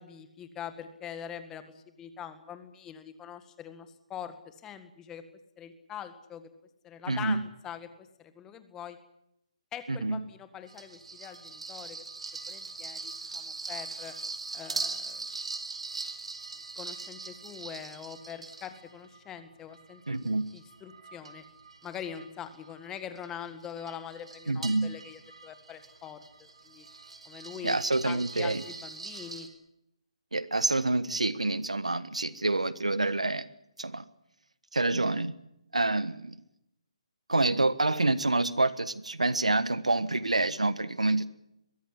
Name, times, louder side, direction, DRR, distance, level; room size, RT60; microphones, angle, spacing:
voice 1, 0.0-5.2 5.6-6.5 6.8-9.0 9.7-12.1 12.5-14.1 14.5-15.2 16.8-20.2 20.5-21.4 21.8-26.9 27.3-27.8 28.0-29.5, left 8 dB, 15° left, 10 dB, 1.8 m, -43 dB
voice 2, 7.1-7.4 9.9-10.2 20.1-20.4 24.5-24.9 27.6-28.6 30.3-33.5 33.8-34.0 34.7-35.3 35.7-36.3 37.3-41.3, right 2 dB, 90° right, 16 dB, 1.4 m, -27 dB
sound 1, 10.7-19.2 19.7-29.5, right 3 dB, 70° right, 3.9 m, -42 dB
22.5 x 16.0 x 10.0 m, 0.82 s
figure-of-eight pair, 145°, 3 cm